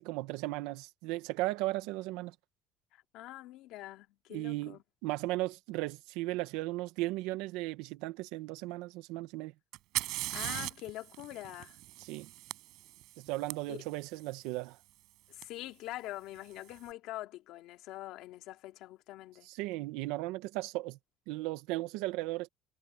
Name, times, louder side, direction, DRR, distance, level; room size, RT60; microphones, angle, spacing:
voice 1, 0.0-2.3 4.3-9.5 12.0-12.3 13.2-14.8 19.4-21.0 21.3-22.5, right 19 dB, 85° right, 1.5 m, -36 dB
voice 2, 2.9-4.8 10.3-11.8 13.7-13.8 15.3-19.5, left 16 dB, 65° left, 2.7 m, -44 dB
Fire, 9.7-13.5 15.4-15.5 16.4-16.8, right 18 dB, 65° right, 7.7 m, -39 dB
cardioid pair, 150°, 0 cm